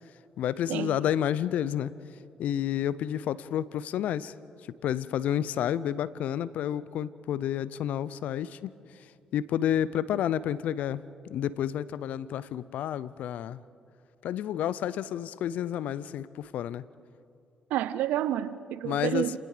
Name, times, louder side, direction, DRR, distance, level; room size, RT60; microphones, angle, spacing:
voice 1, 0.4-1.9 2.4-4.3 4.8-8.7 9.3-13.6 14.2-16.8 18.8-19.4, left 10 dB, 70° left, 18 dB, 0.6 m, -30 dB
voice 2, 17.7-19.4, right 12 dB, 80° right, 15 dB, 0.7 m, -29 dB
29.5 x 18.5 x 5.1 m, 2.6 s
supercardioid pair, 60°, 3 cm